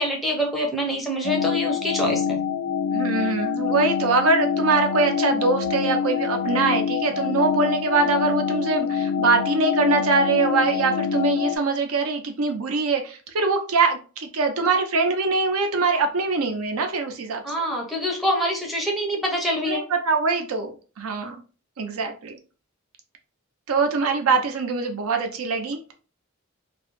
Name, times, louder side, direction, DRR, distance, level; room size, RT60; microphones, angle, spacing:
voice 1, 0.0-2.4 17.4-19.8, equal, ahead, 0 dB, 0.5 m, -25 dB
sound 1, 1.2-11.6, left 7 dB, 60° left, 0.3 m, -25 dB
voice 2, 2.9-17.4 19.7-21.4 21.8-22.4 23.7-25.9, right 4 dB, 80° right, 5 dB, 0.5 m, -23 dB
2.3 x 2.0 x 2.9 m, 0.36 s
head